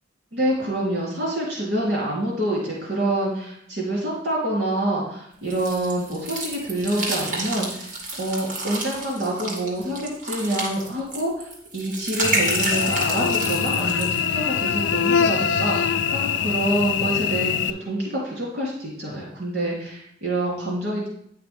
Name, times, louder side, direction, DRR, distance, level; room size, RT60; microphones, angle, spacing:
voice 1, 0.3-21.1, right 1 dB, 65° right, -5 dB, 2.9 m, -27 dB
sound 1, 5.5-14.2, right 2 dB, 45° right, 2.1 m, -30 dB
Cricket / Buzz, 12.2-17.7, left 7 dB, 75° left, 0.4 m, -23 dB
9.6 x 5.8 x 3.5 m, 0.69 s
head